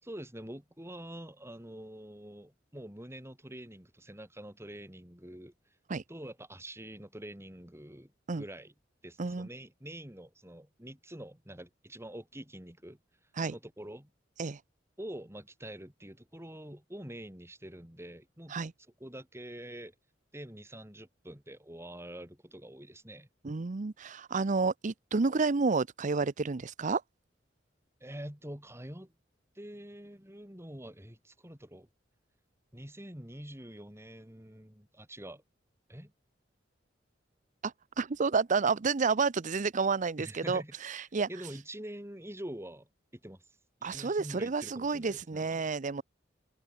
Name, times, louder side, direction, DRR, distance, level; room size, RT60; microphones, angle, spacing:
voice 1, 0.0-5.5 6.1-8.1 8.4-8.7 9.0-13.0 13.5-14.1 15.0-18.6 19.0-19.9 20.3-23.3 28.0-29.1 29.6-31.9 32.7-35.4 35.9-36.1 40.2-43.4 43.8-45.7, right 1 dB, 15° right, 5.4 m, -46 dB
voice 2, 23.4-27.0 37.6-41.3 43.8-46.0, right 4 dB, 45° right, 0.6 m, -30 dB
open air
head